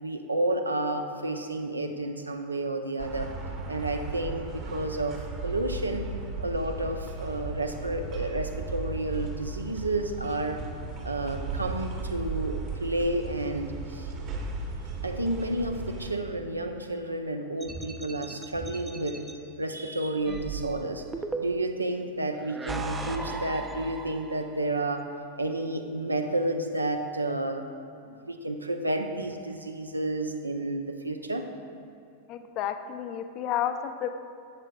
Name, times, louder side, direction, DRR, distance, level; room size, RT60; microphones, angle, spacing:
voice 1, 0.0-3.3 3.7-6.1 6.4-10.6 11.0-14.1 15.0-19.2 19.6-21.0 21.4-25.1 25.4-27.6 28.1-31.5, right 1 dB, 80° right, 6 dB, 0.5 m, -31 dB
sound 1, 3.0-16.1, right 3 dB, 35° right, 1.0 m, -36 dB
sound 2, 17.6-19.3 20.3-21.8 22.4-24.6, right 3 dB, 15° right, 0.5 m, -36 dB
voice 2, 32.3-34.1, left 10 dB, 40° left, 8 dB, 0.5 m, -31 dB
12.5 x 7.3 x 2.4 m, 2.5 s
figure-of-eight pair, 90°, 0 cm